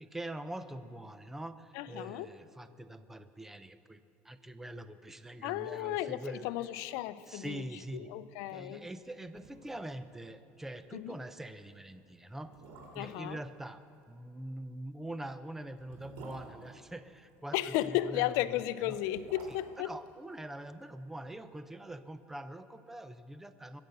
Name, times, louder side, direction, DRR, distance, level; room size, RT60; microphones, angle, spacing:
voice 1, 0.0-6.5 7.3-8.1 8.5-12.5 12.9-19.0 19.5-19.6 19.8-23.8, right 1 dB, 5° right, 12 dB, 0.5 m, -44 dB
voice 2, 1.7-2.3 5.4-7.6 7.9-8.8 10.9-11.2 13.0-13.4 17.5-19.9, left 14 dB, 70° left, 14 dB, 0.5 m, -34 dB
sound 1, 9.3-9.9 10.2-10.3 10.7-10.9 11.6-11.7 12.3-13.3 14.8-17.4 18.7-20.9 21.2-21.3, right 3 dB, 70° right, 3.4 m, -52 dB
22.0 x 7.9 x 6.8 m, 2.6 s
cardioid pair, 145°, 6 cm